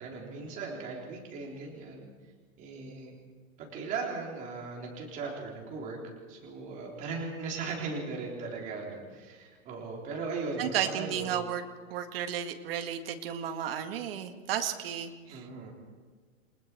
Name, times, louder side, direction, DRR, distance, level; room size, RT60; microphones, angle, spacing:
voice 1, 0.0-2.1 2.6-3.1 3.6-6.0 6.3-11.4 15.3-15.7, right 4 dB, 20° right, -2 dB, 3.8 m, -38 dB
voice 2, 10.6-11.6 11.9-15.4, right 9 dB, 40° right, 6 dB, 1.9 m, -33 dB
29.5 x 19.5 x 4.6 m, 1.5 s
hypercardioid pair, 170°, 42 cm